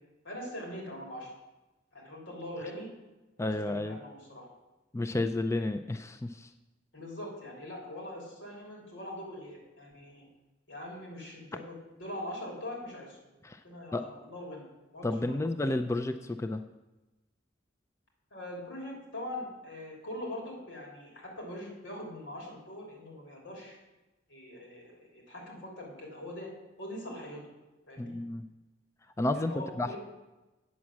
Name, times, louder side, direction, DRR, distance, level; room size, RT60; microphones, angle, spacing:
voice 1, 0.2-1.3 1.9-2.9 3.4-4.5 6.9-10.3 10.7-13.2 13.6-14.6 14.9-15.4 18.3-23.8 24.3-26.5 26.8-27.4 27.9-28.1 29.3-30.0, left 1 dB, 90° left, -1 dB, 3.1 m, -42 dB
voice 2, 3.4-4.0 4.9-6.5 13.4-13.6 13.9-14.1 15.0-16.6 28.0-28.4 29.2-30.0, left 2 dB, 15° left, 8 dB, 0.4 m, -31 dB
8.4 x 6.2 x 7.2 m, 1.1 s
head